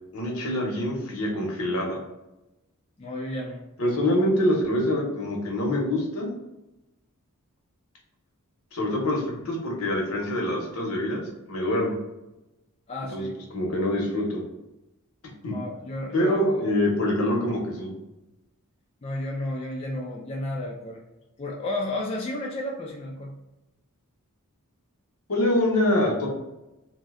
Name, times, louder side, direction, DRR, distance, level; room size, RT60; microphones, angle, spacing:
voice 1, 0.1-2.0 3.8-6.3 8.7-11.2 11.5-11.9 13.1-13.3 13.5-14.4 15.4-15.5 16.1-17.9 25.3-26.3, left 1 dB, 70° left, 0 dB, 0.8 m, -25 dB
voice 2, 3.0-3.6 12.9-13.3 15.5-16.6 19.0-21.0 21.4-23.3, left 1 dB, 25° left, -2 dB, 0.3 m, -32 dB
2.6 x 2.1 x 3.5 m, 0.95 s
head